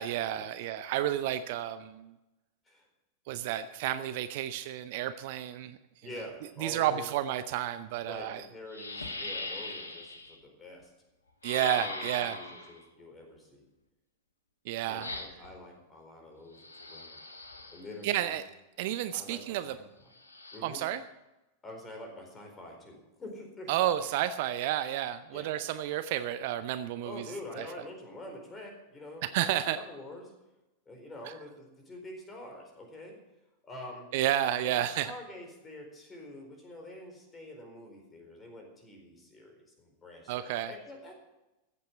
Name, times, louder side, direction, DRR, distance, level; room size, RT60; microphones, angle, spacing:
voice 1, 0.0-2.1 3.3-5.8 6.6-8.4 11.4-12.4 14.7-15.1 18.0-18.4 18.8-19.8 20.6-21.0 23.7-27.3 27.6-27.7 29.3-29.8 31.2-31.3 34.1-35.1 40.3-40.7, right 12 dB, 50° right, 12 dB, 0.6 m, -31 dB
voice 2, 6.0-7.1 8.1-10.9 11.8-13.6 14.9-17.2 17.7-18.4 19.1-19.8 20.5-20.8 21.6-23.9 25.3-25.5 27.0-30.3 30.9-33.2 33.6-34.1 34.6-41.1, left 1 dB, 20° left, 2 dB, 4.3 m, -46 dB
sound 1, 8.0-8.1 8.7-10.4 11.4-12.8 15.0-15.5 16.5-18.0 20.1-20.6, left 2 dB, 75° left, 1.4 m, -40 dB
14.5 x 8.4 x 7.0 m, 0.97 s
figure-of-eight pair, 90°, 0 cm